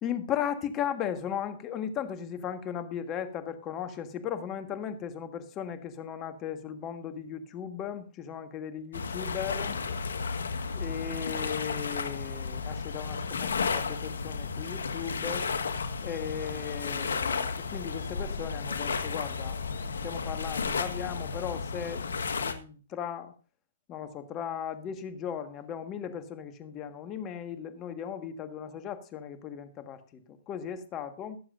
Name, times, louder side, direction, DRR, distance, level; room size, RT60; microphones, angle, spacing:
voice 1, 0.0-9.8 10.7-15.5 16.0-23.3 23.9-31.4, left 8 dB, 25° left, 8 dB, 1.5 m, -37 dB
sound 1, 8.9-22.5, left 5 dB, 85° left, 1.4 m, -33 dB
21.0 x 7.3 x 2.5 m, 0.37 s
hypercardioid pair, 145°, 0 cm